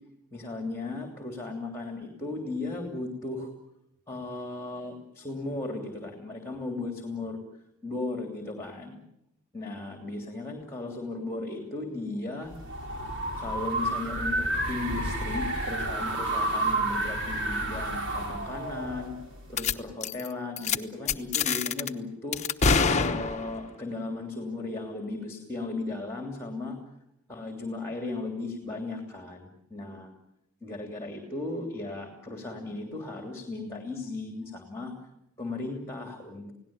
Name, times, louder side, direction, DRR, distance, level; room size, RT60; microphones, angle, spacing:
voice 1, 0.3-3.5 4.1-7.4 7.8-9.0 9.5-12.5 13.4-19.1 19.5-22.4 23.0-26.8 27.3-30.1 30.6-34.9 35.4-36.5, left 2 dB, 10° left, 4 dB, 3.0 m, -36 dB
sound 1, 12.5-19.6, right 1 dB, 55° right, 4.3 m, -30 dB
sound 2, 19.6-19.7 20.0-20.3 20.6-20.8 21.1-21.9 22.3-23.7, left 5 dB, 30° left, 1.0 m, -25 dB
30.0 x 17.5 x 8.8 m, 0.85 s
head